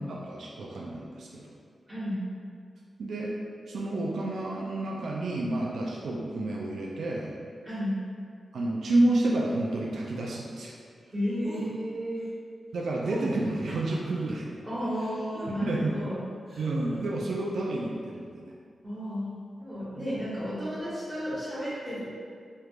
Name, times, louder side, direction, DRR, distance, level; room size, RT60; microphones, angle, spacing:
voice 1, 0.0-1.6 3.0-3.3 3.7-7.4 8.5-10.8 12.7-14.6 15.5-16.0 16.6-18.5 20.0-20.1, right 2 dB, 85° right, -3 dB, 0.4 m, -30 dB
voice 2, 1.9-2.2 7.6-7.9 11.1-12.2 14.6-16.2 18.8-19.3 19.6-22.3, equal, 10° right, -10 dB, 1.2 m, -33 dB
sound 1, 11.4-11.7 13.0-14.2 14.9-15.9 16.5-17.0, right 1 dB, 50° right, 0.9 m, -43 dB
3.2 x 3.2 x 2.4 m, 2.2 s
wide cardioid pair, 130°, 0 cm